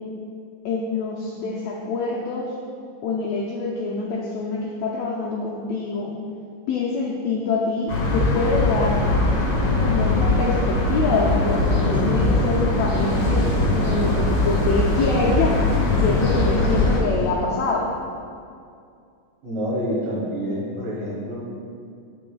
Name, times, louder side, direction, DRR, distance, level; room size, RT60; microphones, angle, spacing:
voice 1, 0.6-2.6 3.0-6.1 6.7-9.0 9.8-15.7 16.0-17.9, left 3 dB, 85° left, -4 dB, 1.5 m, -25 dB
sound 1, 7.9-17.0, left 2 dB, 55° left, 2.4 m, -21 dB
sound 2, 11.4-17.3, equal, 50° right, 2.4 m, -30 dB
voice 2, 19.4-21.4, equal, 85° right, -6 dB, 2.9 m, -27 dB
9.3 x 7.4 x 2.3 m, 2.3 s
omnidirectional pair, 3.7 m